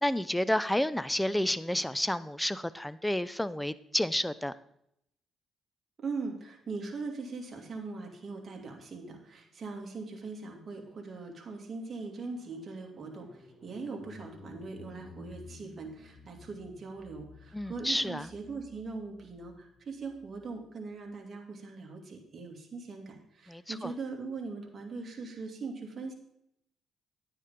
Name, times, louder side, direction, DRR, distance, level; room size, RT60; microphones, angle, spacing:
voice 1, 0.0-4.5 17.5-18.3 23.5-23.9, left 1 dB, 5° left, 16 dB, 0.5 m, -30 dB
voice 2, 6.0-26.1, right 4 dB, 40° right, 1 dB, 2.4 m, -41 dB
sound 1, 11.0-20.5, left 2 dB, 30° left, 3.7 m, -54 dB
10.0 x 9.3 x 3.7 m, 0.76 s
cardioid pair, 85°, 0 cm